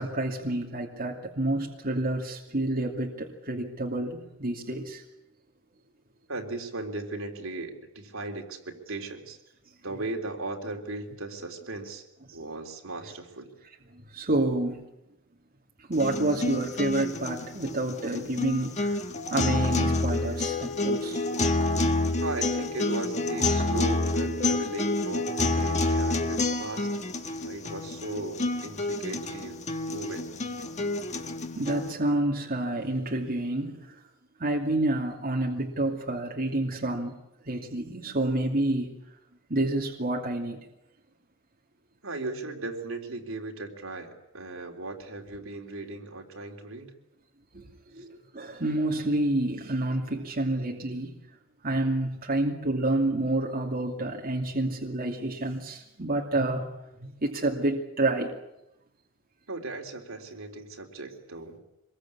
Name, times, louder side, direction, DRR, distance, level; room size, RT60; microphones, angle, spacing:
voice 1, 0.0-5.0 12.3-12.4 13.9-14.9 15.9-21.2 23.4-23.5 31.6-33.9 34.4-37.2 37.5-38.9 39.5-40.6 47.5-47.6 47.9-51.1 51.6-56.7 57.0-58.3, right 2 dB, 45° right, -1 dB, 2.6 m, -29 dB
voice 2, 6.3-9.4 9.8-12.1 12.3-13.5 22.2-26.9 27.4-29.6 29.9-30.3 42.0-46.9 48.0-48.1 59.5-61.6, right 2 dB, 70° right, 2 dB, 3.6 m, -37 dB
sound 1, 15.9-31.9, left 2 dB, 35° left, 1.4 m, -28 dB
25.0 x 22.0 x 8.5 m, 0.89 s
head